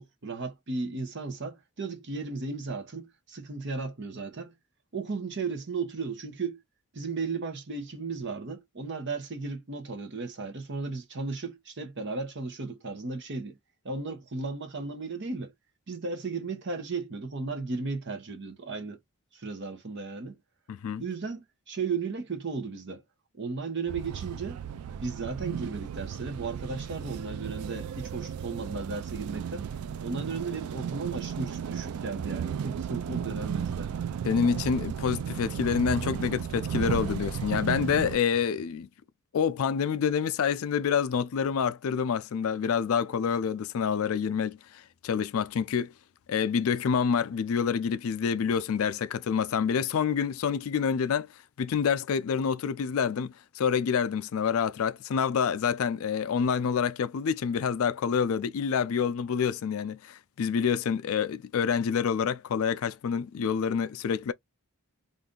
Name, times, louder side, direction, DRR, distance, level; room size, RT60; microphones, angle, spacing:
voice 1, 0.0-4.5 4.9-6.6 6.9-13.6 13.8-15.5 15.9-19.0 19.3-20.4 21.0-23.0 23.4-24.6 25.0-29.7 30.0-33.9, right 4 dB, 50° right, 0.8 m, -35 dB
voice 2, 20.7-21.0 34.2-38.9 39.3-45.9 46.3-51.3 51.6-64.3, left 6 dB, 70° left, 0.4 m, -27 dB
sound 1, 23.9-38.2, right 8 dB, 80° right, 0.3 m, -34 dB
2.6 x 2.4 x 3.6 m
head